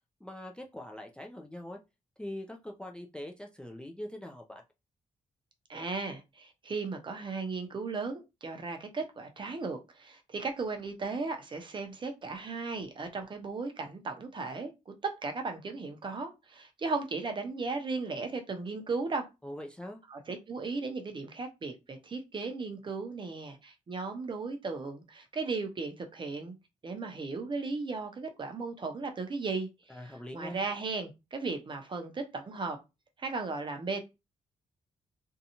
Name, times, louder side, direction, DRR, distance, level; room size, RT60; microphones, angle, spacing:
voice 1, 0.2-1.8 2.2-4.6 19.4-20.0 29.9-30.6, left 1 dB, 5° left, 0.4 m, -42 dB
voice 2, 5.7-19.3 20.1-26.5 26.8-30.0 30.3-32.8 33.2-34.0, right 4 dB, 40° right, 0.6 m, -36 dB
2.6 x 2.2 x 2.8 m
cardioid pair, 90°, 13 cm